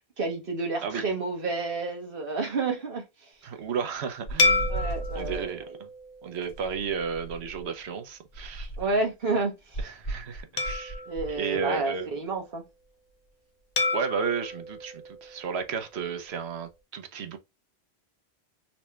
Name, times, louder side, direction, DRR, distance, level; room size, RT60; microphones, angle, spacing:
voice 1, 0.2-3.3 4.7-5.5 8.8-9.9 11.1-12.6, right 3 dB, 55° right, 1.3 m, -30 dB
voice 2, 3.4-4.7 5.1-5.9 6.2-8.7 9.8-11.0 11.4-12.1 13.9-17.4, right 6 dB, 75° right, 1.0 m, -33 dB
sound 1, 4.3-5.5 6.4-7.7 8.3-9.0 9.7-11.4, right 2 dB, 60° left, 2.1 m, -36 dB
sound 2, 4.4-7.1 7.6-7.8 10.6-12.4 13.8-16.0, left 3 dB, 45° left, 0.7 m, -31 dB
4.1 x 3.1 x 2.3 m
omnidirectional pair, 1.1 m